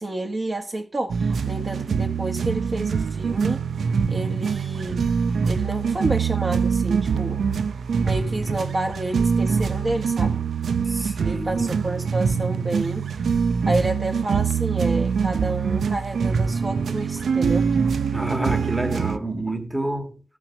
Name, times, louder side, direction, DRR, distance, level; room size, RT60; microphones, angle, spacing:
voice 1, 0.0-3.6 4.1-5.0 5.4-7.4 8.0-10.4 11.2-13.1 13.6-17.7, right 2 dB, 30° right, 1.4 m, -29 dB
sound 1, 1.1-19.2, right 6 dB, 80° right, 0.6 m, -24 dB
voice 2, 10.9-11.7 18.1-20.2, right 1 dB, 10° right, 1.5 m, -28 dB
14.0 x 6.0 x 6.4 m
wide cardioid pair, 150°, 0 cm